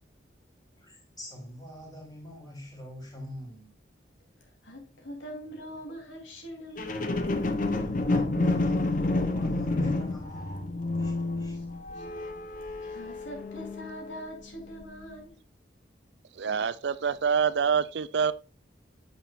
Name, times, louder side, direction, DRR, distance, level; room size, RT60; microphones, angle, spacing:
voice 1, 0.8-3.7 8.1-11.6, left 1 dB, 20° left, 4.1 m, -42 dB
voice 2, 4.6-7.1 11.4-12.0 12.8-15.4, equal, 80° left, 3.6 m, -43 dB
sound 1, 6.8-14.2 14.8-14.9, left 2 dB, 45° left, 1.0 m, -29 dB
voice 3, 16.4-18.3, right 6 dB, 65° right, 0.5 m, -26 dB
10.0 x 7.6 x 2.6 m
head